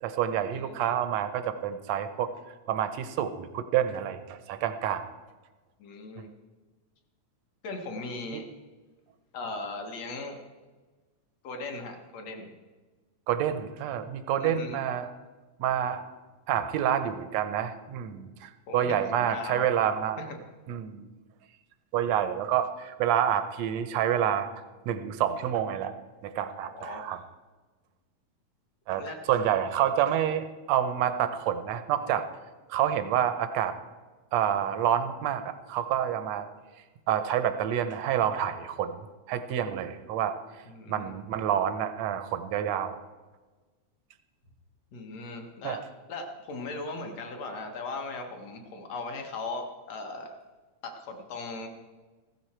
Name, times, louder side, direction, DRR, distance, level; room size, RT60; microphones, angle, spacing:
voice 1, 0.0-2.3 2.7-5.0 6.2-6.3 8.3-8.4 13.3-15.1 15.6-16.1 16.5-20.2 20.7-21.1 21.9-24.5 24.9-25.9 26.2-27.2 28.9-29.0 29.3-32.3 32.7-33.8 34.3-36.4 37.1-40.3 40.9-43.0 45.6-45.8, right 10 dB, 75° right, 10 dB, 1.7 m, -28 dB
voice 2, 5.8-6.3 7.6-8.4 9.3-10.4 11.4-12.5 14.4-14.8 18.7-19.7 20.2-20.4 26.6-27.0 29.0-29.2 40.7-41.1 44.9-50.3 50.8-51.7, left 3 dB, 60° left, 3 dB, 2.4 m, -38 dB
15.5 x 13.0 x 4.4 m, 1.3 s
omnidirectional pair, 3.6 m